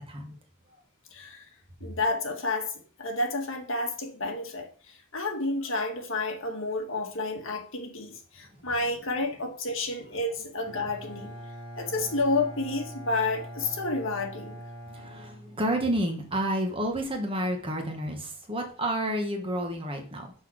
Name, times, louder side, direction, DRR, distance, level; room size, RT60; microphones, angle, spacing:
voice 1, 1.1-1.4 1.8-2.7 3.0-4.7 5.1-11.3 11.8-14.6, left 2 dB, 60° left, 2 dB, 1.8 m, -30 dB
Bowed string instrument, 10.6-16.1, equal, 60° right, 3.5 m, -43 dB
voice 2, 14.9-20.3, right 1 dB, 25° right, 3 dB, 1.4 m, -30 dB
6.2 x 5.5 x 6.4 m, 0.41 s
head